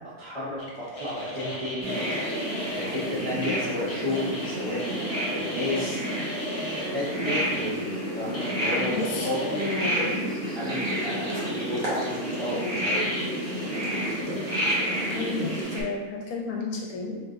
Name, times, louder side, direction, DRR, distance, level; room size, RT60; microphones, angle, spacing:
voice 1, 0.2-2.3 2.7-4.8 5.3-6.0 6.9-7.8 8.2-10.2 10.6-13.1 13.5-14.4, left 1 dB, 30° right, -11 dB, 0.6 m, -32 dB
sound 1, 0.6-7.7 8.3-10.0 10.6-10.7 11.3-15.6, left 1 dB, 45° left, 0.4 m, -37 dB
sound 2, 1.8-15.8, equal, 65° right, 1.5 m, -30 dB
voice 2, 8.9-10.1 15.1-17.2, left 3 dB, 75° left, 0 dB, 1.2 m, -32 dB
4.2 x 3.1 x 2.5 m, 1.3 s
omnidirectional pair, 1.6 m